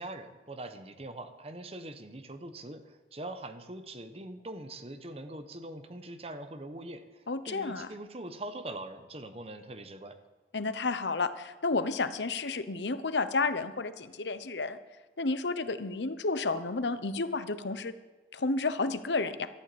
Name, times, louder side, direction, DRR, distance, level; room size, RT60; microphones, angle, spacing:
voice 1, 0.0-10.2, right 1 dB, 35° right, 9 dB, 1.2 m, -43 dB
voice 2, 7.3-7.9 10.5-14.8 15.2-17.9 18.3-19.5, left 3 dB, 85° left, 13 dB, 1.0 m, -31 dB
13.0 x 11.0 x 8.6 m, 1.2 s
head